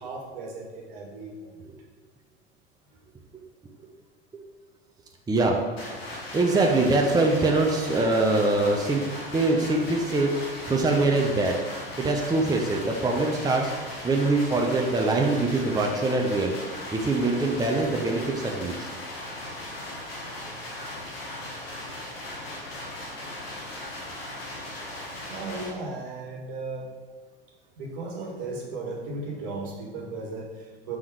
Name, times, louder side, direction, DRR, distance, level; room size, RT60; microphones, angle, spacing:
voice 1, 0.0-1.6 25.0-26.9 27.8-31.0, right 3 dB, 65° right, -1 dB, 1.6 m, -36 dB
voice 2, 5.3-5.6 6.0-9.0 9.3-10.3 10.7-11.5 12.0-13.7 14.0-16.5 16.9-18.9, right 2 dB, 15° right, 1 dB, 0.7 m, -23 dB
sound 1, 5.8-25.7, left 1 dB, 85° left, 1.4 m, -38 dB
6.1 x 3.8 x 4.7 m, 1.4 s
hypercardioid pair, 80°, 29 cm